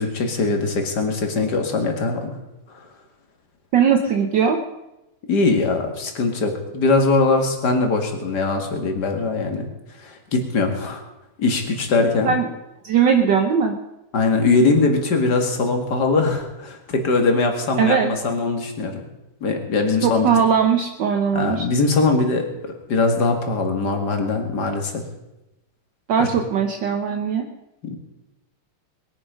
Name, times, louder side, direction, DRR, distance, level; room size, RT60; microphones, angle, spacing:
voice 1, 0.0-2.4 2.7-2.9 5.3-9.7 10.0-11.0 11.4-12.3 14.1-19.0 19.4-20.3 21.3-25.0 27.8-28.0, left 3 dB, 50° left, 4 dB, 2.5 m, -21 dB
voice 2, 3.7-4.6 12.2-12.5 12.8-13.7 17.8-18.1 20.0-21.7 26.1-27.5, right 7 dB, 65° right, 5 dB, 1.6 m, -19 dB
21.5 x 10.5 x 5.2 m, 0.95 s
omnidirectional pair, 2.3 m